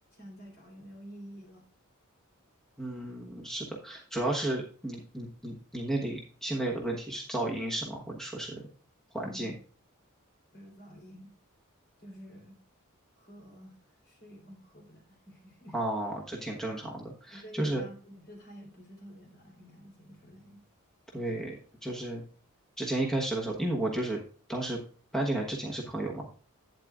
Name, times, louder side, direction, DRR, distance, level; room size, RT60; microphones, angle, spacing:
voice 1, 0.1-1.6 9.2-9.6 10.5-11.3 12.0-12.6 13.2-13.8 14.0-15.8 16.7-16.8 17.3-20.7, equal, 45° left, 0 dB, 3.7 m, -49 dB
voice 2, 2.8-8.6 9.1-9.5 15.7-17.8 21.1-21.5 21.8-22.2 22.8-24.2 24.5-24.8 25.1-26.3, right 1 dB, ahead, -1 dB, 1.2 m, -33 dB
11.5 x 9.2 x 2.4 m, 0.42 s
head